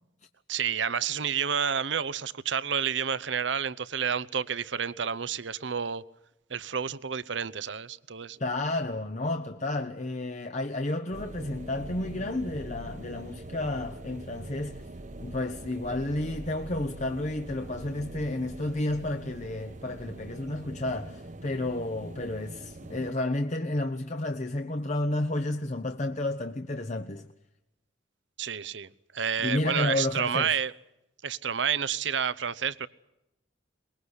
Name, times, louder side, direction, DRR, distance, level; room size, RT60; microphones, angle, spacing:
voice 1, 0.5-6.0 6.5-8.4 28.4-30.7 31.2-32.9, right 7 dB, 75° right, 0.9 m, -30 dB
voice 2, 8.4-14.8 15.2-27.3 29.4-30.5, left 2 dB, 40° left, 1.0 m, -31 dB
sound 1, 11.1-23.1, right 1 dB, 40° right, 0.9 m, -43 dB
23.0 x 21.0 x 8.1 m
head